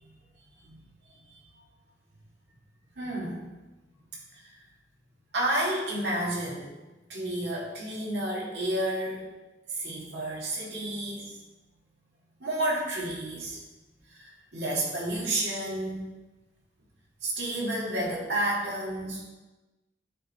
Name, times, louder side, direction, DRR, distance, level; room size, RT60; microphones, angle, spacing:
voice 1, 3.0-3.5 4.3-4.5 5.3-6.7 7.1-9.2 9.7-11.4 12.4-13.6 14.1-16.0 17.2-19.2, right 1 dB, 70° right, -4 dB, 2.1 m, -31 dB
9.7 x 4.6 x 4.3 m, 1.1 s
head